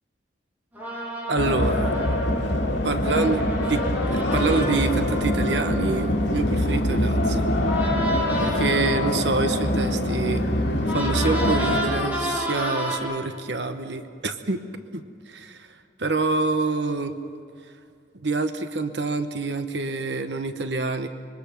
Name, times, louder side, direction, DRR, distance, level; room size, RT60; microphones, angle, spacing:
sound 1, 0.7-7.1 7.6-13.0, equal, 10° right, 3.4 m, -32 dB
voice 1, 1.3-1.9 2.8-3.8 4.1-7.5 8.4-10.4 10.9-14.6 14.9-15.0 15.3-15.6 16.0-17.1 18.2-21.1, right 3 dB, 75° right, 8 dB, 1.1 m, -26 dB
sound 2, 1.4-11.8, left 1 dB, 80° left, 3.1 m, -24 dB
26.0 x 22.5 x 5.9 m, 2.2 s
head